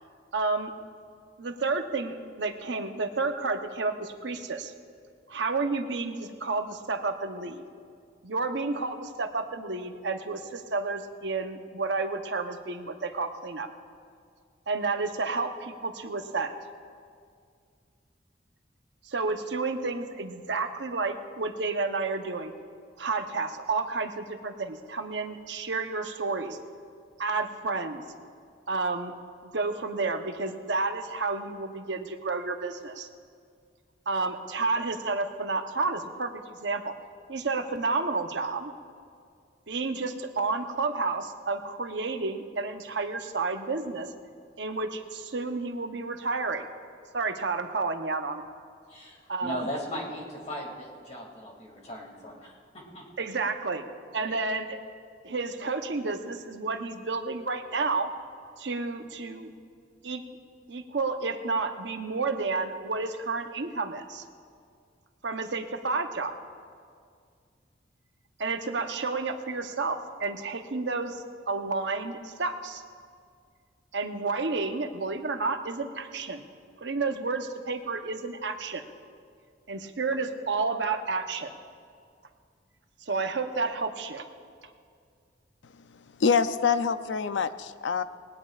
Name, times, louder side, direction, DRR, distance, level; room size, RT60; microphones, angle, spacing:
voice 1, 0.3-0.7 1.4-4.7 5.3-7.6 8.2-13.7 14.7-16.5 19.0-22.5 23.0-26.6 27.2-28.0 28.7-29.1 29.4-33.1 34.1-36.9 37.3-38.7 39.7-44.1 44.6-46.6 47.1-48.4 49.3-49.6 53.2-53.9 54.1-54.8 55.2-58.1 58.6-59.5 60.0-60.2 60.7-64.2 65.2-66.4 68.4-72.8 73.9-76.4 76.8-78.8 79.7-81.5 83.0-84.3, right 3 dB, 70° right, 6 dB, 0.9 m, -31 dB
voice 2, 48.9-52.6 52.9-53.0 54.2-54.4, equal, 35° left, -1 dB, 2.4 m, -37 dB
voice 3, 86.2-88.0, left 6 dB, 75° left, 12 dB, 0.5 m, -25 dB
19.5 x 19.5 x 2.4 m, 2.2 s
head